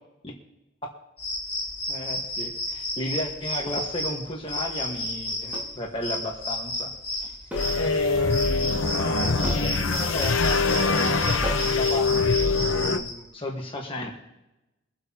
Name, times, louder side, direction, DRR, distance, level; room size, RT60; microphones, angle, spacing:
sound 1, 1.2-13.1, left 1 dB, 10° left, 4.6 m, -32 dB
voice 1, 1.9-7.3 7.7-14.1, left 1 dB, 25° left, -1 dB, 1.5 m, -34 dB
sound 2, 3.6-3.8 5.5-5.8 7.5-7.8 8.1-8.2 9.4-9.7 11.4-11.8, equal, 5° right, 2.2 m, -35 dB
sound 3, 7.5-13.0, left 4 dB, 80° left, 0.9 m, -24 dB
24.0 x 8.2 x 3.0 m, 0.96 s
head